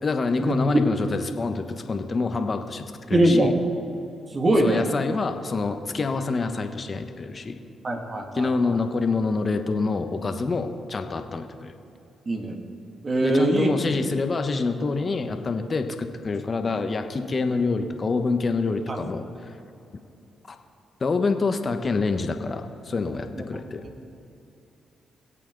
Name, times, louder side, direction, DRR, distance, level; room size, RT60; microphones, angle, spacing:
voice 1, 0.0-3.5 4.6-7.6 8.3-11.7 13.2-19.2 20.5-20.6 21.0-23.8, left 3 dB, 45° left, 7 dB, 1.2 m, -26 dB
voice 2, 3.1-3.5 4.3-4.8 7.8-8.8 12.3-12.5 13.0-13.7 18.9-19.0, right 1 dB, 40° right, 2 dB, 2.3 m, -22 dB
22.0 x 8.3 x 3.9 m, 2.7 s
hypercardioid pair, 45°, 0 cm